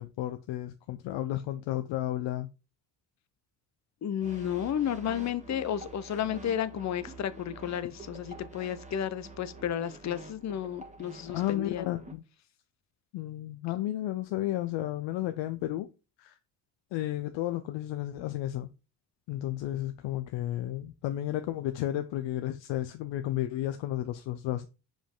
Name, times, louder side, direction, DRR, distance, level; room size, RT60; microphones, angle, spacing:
voice 1, 0.0-2.5 11.3-12.2 13.1-15.9 16.2-16.3 16.9-18.7 19.3-24.7, left 14 dB, 75° left, 0.7 m, -32 dB
voice 2, 4.0-11.9, left 9 dB, 40° left, 0.7 m, -32 dB
sound 1, 4.2-12.1, right 3 dB, 15° right, 1.5 m, -48 dB
5.2 x 5.1 x 3.7 m
supercardioid pair, 75°, 45 cm